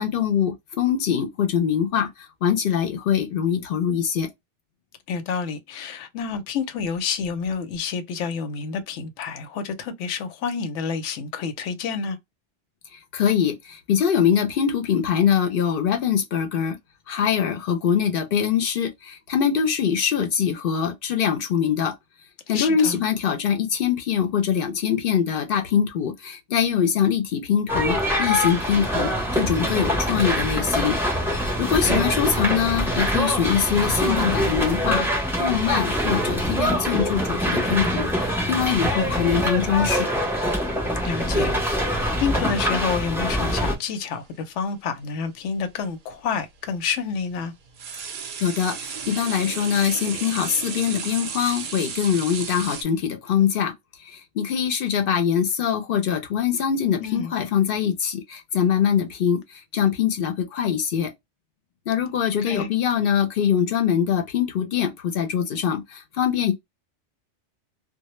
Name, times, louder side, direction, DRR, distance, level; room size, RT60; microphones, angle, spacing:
voice 1, 0.0-4.3 12.9-16.8 17.1-21.9 22.5-31.0 31.6-35.1 35.4-40.1 48.4-53.7 54.0-61.1 61.9-66.5, left 8 dB, 60° left, 0.6 m, -23 dB
voice 2, 5.1-12.2 22.5-23.0 31.8-32.1 41.0-41.8 42.2-47.5 57.0-57.3 62.4-62.7, left 6 dB, 85° left, 0.9 m, -29 dB
sound 1, 27.7-43.7, equal, 5° right, 0.4 m, -24 dB
sound 2, 36.7-44.1 45.2-45.3 46.1-52.8, right 6 dB, 60° right, 0.6 m, -38 dB
2.0 x 2.0 x 2.9 m
omnidirectional pair, 1.2 m